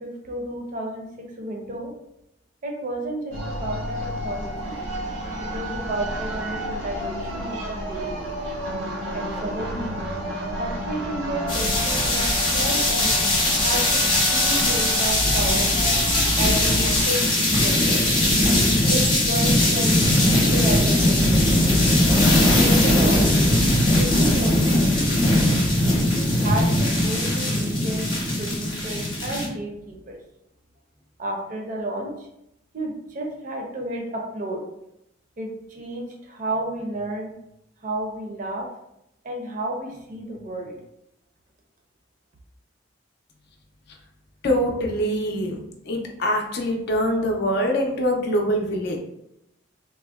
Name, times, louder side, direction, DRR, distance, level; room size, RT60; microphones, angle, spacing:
voice 1, 0.0-1.9 2.6-4.0 4.2-4.7 5.4-8.1 9.1-10.0 10.6-13.3 13.5-14.0 14.3-15.7 16.4-18.0 18.9-21.5 22.4-25.5 26.1-30.2 31.2-32.1 32.7-34.6 35.4-37.3 37.8-38.7 39.2-40.8, right 1 dB, 45° right, 1 dB, 0.5 m, -32 dB
Firetruck engine and siren, 3.3-17.0, equal, 85° right, 0.8 m, -30 dB
sound 1, 11.5-29.5, left 1 dB, 25° left, 0.8 m, -20 dB
voice 2, 44.4-45.6 45.8-49.0, equal, 55° left, 1 dB, 0.5 m, -24 dB
3.4 x 2.0 x 2.3 m, 0.83 s
head